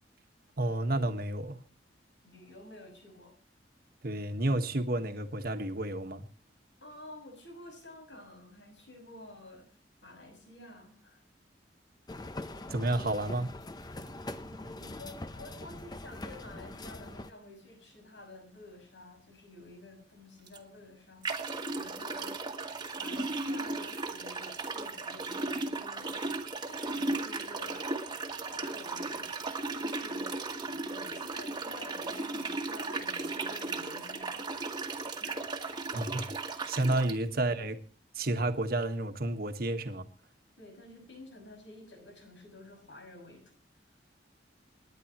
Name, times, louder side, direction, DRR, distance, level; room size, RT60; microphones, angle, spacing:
voice 1, 0.6-1.6 4.0-6.3 12.7-13.5 35.9-36.3 36.7-37.8 38.2-40.0, right 2 dB, 55° right, 1.4 m, -31 dB
voice 2, 2.2-3.3 6.8-11.2 14.4-21.4 21.8-22.5 23.0-26.3 26.7-27.8 28.5-30.4 30.7-34.7 35.2-35.4 36.9-37.1 40.6-43.6, left 1 dB, 85° left, 6.2 m, -51 dB
sound 1, 12.1-17.3, left 2 dB, 20° left, 0.8 m, -43 dB
sound 2, 20.5-20.6 21.2-37.2, right 3 dB, 25° right, 1.5 m, -36 dB
28.5 x 10.5 x 3.0 m
head